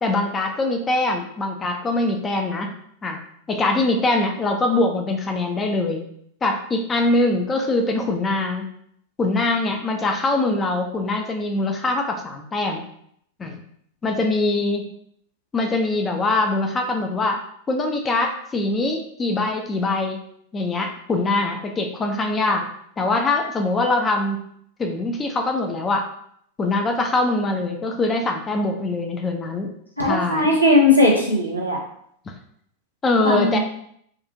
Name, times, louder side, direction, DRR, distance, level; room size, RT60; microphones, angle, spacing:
voice 1, 0.0-2.8 3.0-3.2 3.5-6.0 6.4-8.7 9.2-12.8 13.4-13.6 14.0-14.9 15.5-17.4 17.7-20.2 20.5-22.7 23.0-24.4 24.8-26.1 26.6-29.7 30.0-30.6 33.0-33.6, left 2 dB, 20° left, 3 dB, 0.3 m, -23 dB
voice 2, 30.0-31.8 33.2-33.6, left 2 dB, 90° left, -2 dB, 0.6 m, -18 dB
2.4 x 2.3 x 2.6 m, 0.68 s
figure-of-eight pair, 90°, 0 cm